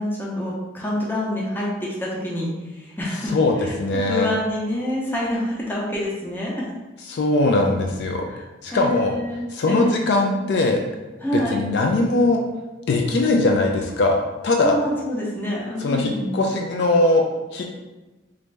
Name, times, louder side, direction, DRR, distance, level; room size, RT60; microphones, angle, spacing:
voice 1, 0.0-2.5 2.8-3.7 4.1-6.6 8.3-8.4 8.7-10.2 11.2-11.6 14.6-16.3, left 1 dB, 10° left, -5 dB, 0.6 m, -27 dB
voice 2, 3.3-4.3 7.1-8.2 8.6-9.1 9.5-10.8 11.3-12.4 12.9-14.8 15.8-17.2 17.5-17.6, left 2 dB, 60° left, 2 dB, 0.3 m, -20 dB
3.2 x 2.6 x 3.2 m, 1.1 s
head